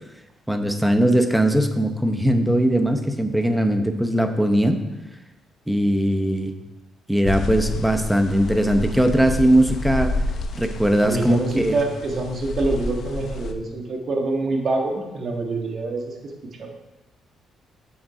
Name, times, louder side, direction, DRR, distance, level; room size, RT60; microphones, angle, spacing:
voice 1, 0.5-4.8 5.7-6.5 7.1-10.1 10.6-11.8, right 1 dB, 5° right, 7 dB, 0.8 m, -20 dB
sound 1, 7.2-13.5, left 2 dB, 60° left, 0.7 m, -29 dB
voice 2, 11.0-16.7, right 3 dB, 50° right, 2 dB, 1.6 m, -26 dB
7.1 x 6.2 x 4.9 m, 1.0 s
cardioid pair, 90°, 0 cm